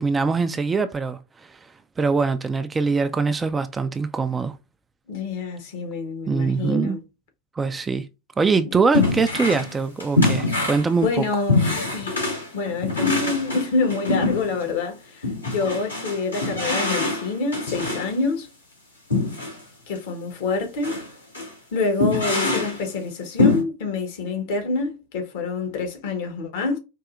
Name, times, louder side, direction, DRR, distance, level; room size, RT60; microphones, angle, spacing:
voice 1, 0.0-1.6 2.0-4.6 6.3-7.0 7.6-8.1 8.4-11.3, right 4 dB, 15° right, 0.4 m, -23 dB
voice 2, 5.1-7.0 8.6-8.8 11.0-12.3 12.5-18.5 19.9-21.0 21.7-26.8, left 4 dB, 55° left, 1.2 m, -27 dB
sound 1, 8.9-9.7 10.0-14.7 15.2-18.1 19.1-19.6 19.9-20.0 20.8-21.1 21.3-21.5 22.0-22.8 23.4-23.6, left 2 dB, 85° left, 1.7 m, -24 dB
4.6 x 2.7 x 2.4 m
figure-of-eight pair, 85°, 0 cm